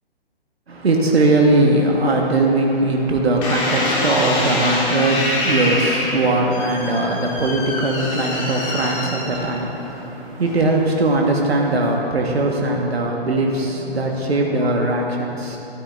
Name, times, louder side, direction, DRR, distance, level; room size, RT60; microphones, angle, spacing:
voice 1, 0.7-15.6, right 2 dB, 80° right, 0 dB, 1.4 m, -20 dB
sound 1, 3.4-9.8 10.4-10.9, left 1 dB, 20° left, 2.6 m, -25 dB
14.0 x 12.5 x 2.5 m, 2.9 s
figure-of-eight pair, 135°, 31 cm